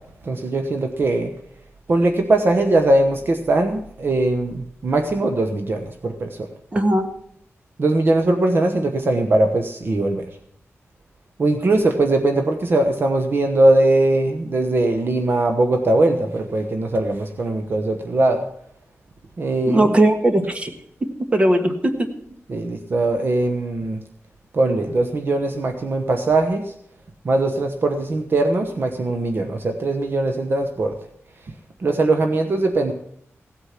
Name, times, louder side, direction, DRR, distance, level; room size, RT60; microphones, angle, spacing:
voice 1, 0.2-1.3 1.9-6.5 7.8-10.2 11.4-18.4 19.4-19.9 22.5-24.0 24.5-26.7 27.2-30.9 31.8-32.9, right 2 dB, 45° right, 5 dB, 1.0 m, -20 dB
voice 2, 6.7-7.1 19.7-20.7 21.3-22.1, right 1 dB, 25° right, 6 dB, 1.5 m, -18 dB
16.5 x 8.3 x 5.9 m, 0.70 s
wide cardioid pair, 155°, 5 cm